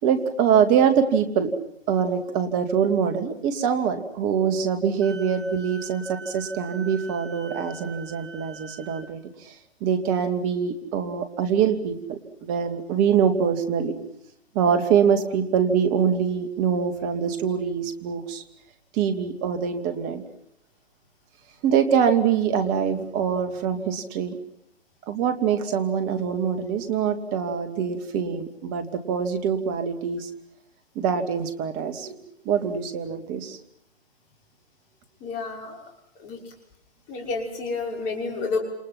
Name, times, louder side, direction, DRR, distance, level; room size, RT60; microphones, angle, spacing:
voice 1, 0.0-1.5 1.9-9.5 9.8-13.9 14.5-18.4 18.9-20.2 21.6-24.4 25.1-30.3 31.0-32.2 32.4-33.6, right 7 dB, 25° right, 8 dB, 2.3 m, -24 dB
Wind instrument woodwind instrument, 5.0-9.1, right 3 dB, 90° right, 6.5 m, -43 dB
voice 2, 35.2-35.9 36.2-36.4 37.1-38.6, left 4 dB, 25° left, 1 dB, 5.9 m, -30 dB
29.5 x 28.0 x 5.9 m, 0.76 s
figure-of-eight pair, 135°, 31 cm